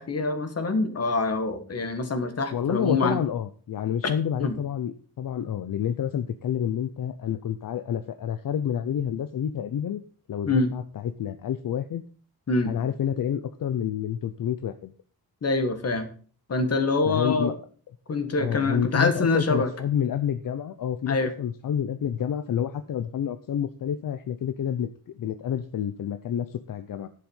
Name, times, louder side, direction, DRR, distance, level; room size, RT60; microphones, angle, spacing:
voice 1, 0.0-3.2 4.4-4.6 10.5-10.7 12.5-12.7 15.4-16.1 16.5-17.6 18.1-19.7 21.1-21.3, left 3 dB, 45° left, 8 dB, 1.6 m, -25 dB
voice 2, 2.5-10.0 10.3-12.0 12.7-14.9 17.1-17.5 18.4-27.1, left 9 dB, 65° left, 11 dB, 0.7 m, -29 dB
10.5 x 7.8 x 5.5 m, 0.44 s
wide cardioid pair, 175°, 36 cm